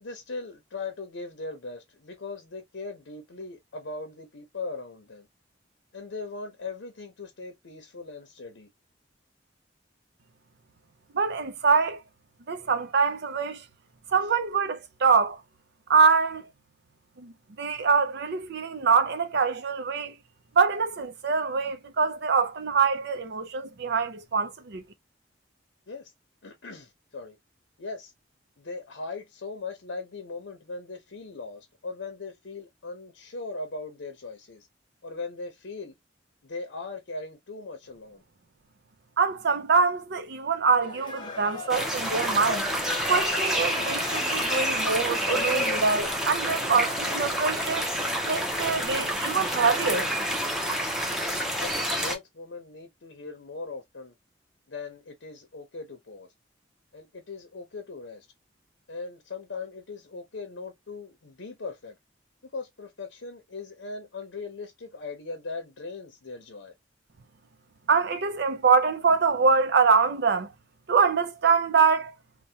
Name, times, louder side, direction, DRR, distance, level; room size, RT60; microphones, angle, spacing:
voice 1, 0.0-5.3 5.9-8.7 25.9-26.1 26.4-27.4 27.8-28.1 28.6-34.7 35.0-36.0 36.4-38.2 51.1-54.1 54.7-56.3 56.9-58.3 58.9-62.0 62.4-66.7, left 3 dB, 75° left, 0.7 m, -39 dB
voice 2, 11.1-12.0 12.5-13.6 14.1-15.4 15.9-16.4 17.2-20.1 20.6-24.8 39.2-42.7 43.1-47.9 48.2-50.1 67.9-70.5 70.9-72.1, right 5 dB, 60° right, 0.6 m, -24 dB
sound 1, 40.8-49.1, left 3 dB, 25° left, 0.8 m, -39 dB
sound 2, 41.7-52.2, equal, 5° right, 0.7 m, -28 dB
3.3 x 2.2 x 2.7 m
head